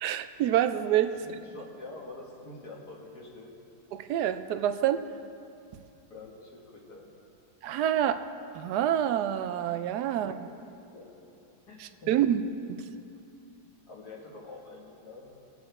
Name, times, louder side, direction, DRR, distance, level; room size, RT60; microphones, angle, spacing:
voice 1, 0.0-1.1 3.9-5.0 7.6-8.2 8.5-10.3 11.8-12.4, right 11 dB, 75° right, 10 dB, 1.1 m, -27 dB
voice 2, 1.1-3.5 6.1-7.1 10.3-10.4 10.7-11.1 11.7-12.1 13.9-15.4, left 3 dB, 60° left, -3 dB, 2.4 m, -46 dB
20.5 x 7.8 x 3.5 m, 2.7 s
omnidirectional pair, 1.9 m